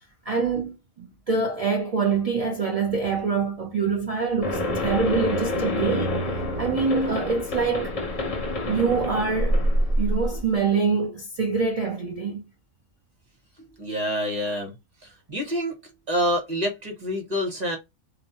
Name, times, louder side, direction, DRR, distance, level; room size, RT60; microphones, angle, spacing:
voice 1, 0.3-6.2 6.6-8.0 8.7-9.6 10.0-12.4, right 5 dB, 70° right, 0.3 m, -25 dB
sound 1, 4.4-10.5, left 1 dB, 45° left, 0.5 m, -26 dB
voice 2, 13.6-14.7 15.0-15.8 16.1-17.8, equal, 35° right, 1.1 m, -27 dB
2.5 x 2.1 x 2.8 m
omnidirectional pair, 1.3 m